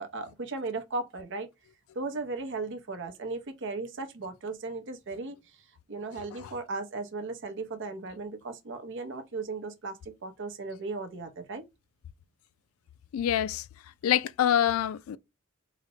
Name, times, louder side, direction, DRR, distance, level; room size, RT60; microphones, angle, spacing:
voice 1, 0.0-1.5 1.9-5.4 5.9-11.6, right 3 dB, 60° right, 0.7 m, -36 dB
voice 2, 13.1-13.6 14.0-15.2, left 10 dB, 85° left, 0.3 m, -25 dB
4.0 x 2.1 x 2.7 m
head